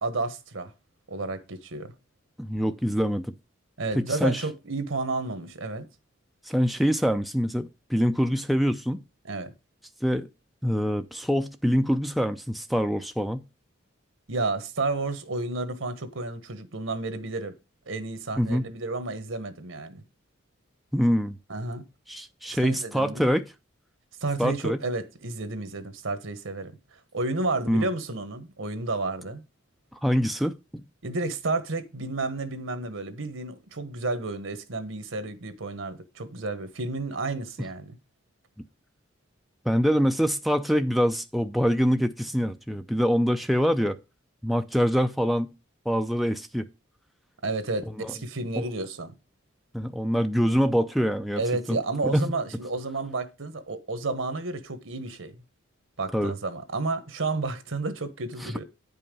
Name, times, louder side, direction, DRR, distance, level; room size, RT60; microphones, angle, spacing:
voice 1, 0.0-0.7 1.1-1.9 3.8-5.9 9.3-9.5 14.3-17.5 17.9-20.0 21.5-21.8 22.5-23.2 24.2-29.4 31.0-38.0 47.4-49.1 51.4-55.4 56.0-58.6, right 3 dB, 80° right, 1.3 m, -31 dB
voice 2, 2.4-3.3 3.9-4.4 6.4-9.0 10.0-10.3 10.6-13.4 18.4-18.6 20.9-21.4 22.1-23.5 24.4-24.8 27.7-27.9 29.9-30.5 39.7-44.0 44.4-45.5 45.9-46.7 48.0-48.1 48.6-48.7 49.7-51.4 51.7-51.8 52.0-52.3 56.1-56.3 58.4-58.6, equal, ahead, 0.4 m, -25 dB
9.5 x 5.5 x 5.3 m
head